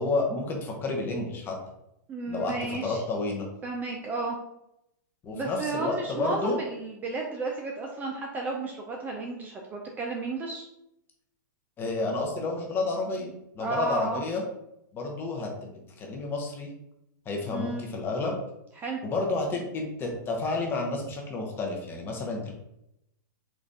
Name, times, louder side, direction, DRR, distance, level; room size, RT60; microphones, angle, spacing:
voice 1, 0.0-1.5 2.3-3.5 5.2-6.6 11.8-14.4 14.9-16.7 17.3-18.3 19.0-22.5, left 3 dB, 20° left, 1 dB, 0.7 m, -30 dB
voice 2, 2.1-3.0 3.6-4.4 5.3-10.7 13.6-14.2 17.5-17.9 18.8-19.0, right 3 dB, 15° right, 0 dB, 0.4 m, -33 dB
4.0 x 2.4 x 3.4 m, 0.83 s
hypercardioid pair, 145°, 11 cm